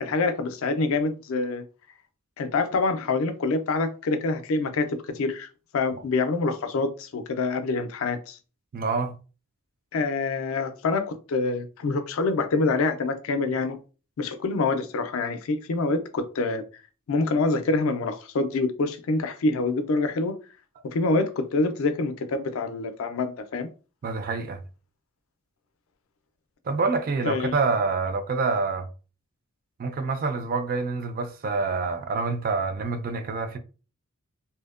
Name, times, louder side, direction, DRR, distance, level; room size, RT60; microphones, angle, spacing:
voice 1, 0.0-1.6 2.4-8.4 9.9-13.8 14.2-16.6 17.1-20.3 20.8-23.7 27.2-27.5, left 3 dB, 70° left, 0.4 m, -26 dB
voice 2, 8.7-9.2 24.0-24.6 26.7-28.9 29.8-33.6, right 4 dB, 40° right, 0.3 m, -27 dB
2.6 x 2.1 x 2.3 m
head